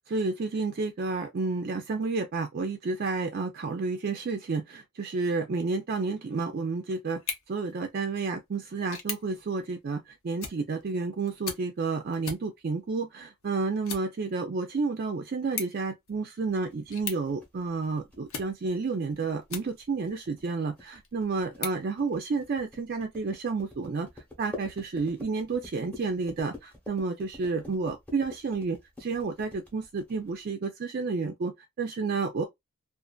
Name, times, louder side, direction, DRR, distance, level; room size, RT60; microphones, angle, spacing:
voice 1, 0.1-7.2 7.5-24.1 24.4-32.4, right 4 dB, 45° right, 0.4 m, -31 dB
sound 1, 7.1-20.1 20.6-22.7, left 6 dB, 65° left, 0.8 m, -43 dB
sound 2, 16.7-30.4, left 3 dB, 5° left, 0.9 m, -47 dB
2.5 x 2.5 x 2.2 m
head